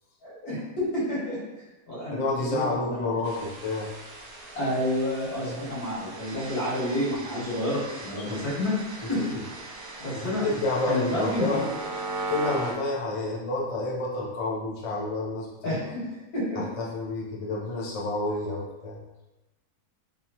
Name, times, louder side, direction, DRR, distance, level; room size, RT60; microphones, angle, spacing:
voice 1, 0.2-1.4 1.9-3.1 4.5-9.2 10.0-10.4 10.9-11.6 15.6-16.1 16.3-16.6, left 1 dB, 85° left, -8 dB, 2.1 m, -29 dB
voice 2, 2.1-3.9 5.4-5.7 8.2-8.4 9.2-9.4 10.2-11.6 12.3-15.8 16.5-19.0, left 2 dB, 45° left, -3 dB, 0.4 m, -30 dB
sound 1, 3.2-12.7, right 2 dB, 85° right, 1.2 m, -38 dB
3.6 x 3.0 x 2.8 m, 1.1 s
omnidirectional pair, 1.6 m